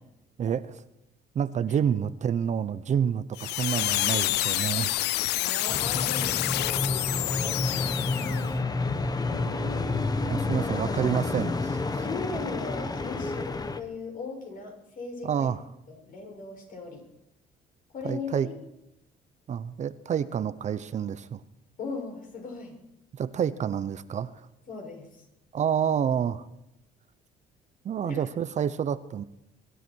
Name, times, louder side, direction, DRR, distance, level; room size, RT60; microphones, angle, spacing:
voice 1, 1.3-5.0 10.2-11.8 15.2-15.6 18.0-18.5 19.5-21.4 23.1-24.5 25.5-26.4 27.8-29.2, right 8 dB, 45° right, 14 dB, 0.9 m, -28 dB
sound 1, 3.4-8.5, left 16 dB, 80° left, 0.6 m, -28 dB
voice 2, 5.3-7.2 7.4-8.6 9.2-10.0 10.6-10.9 11.9-15.5 15.9-17.0 17.9-18.5 21.8-22.8 24.7-25.3 28.0-28.2, left 3 dB, 55° left, 2 dB, 7.1 m, -38 dB
sound 2, 5.7-13.8, left 3 dB, 20° left, 1.2 m, -30 dB
24.0 x 12.5 x 4.6 m, 0.85 s
cardioid pair, 110°, 17 cm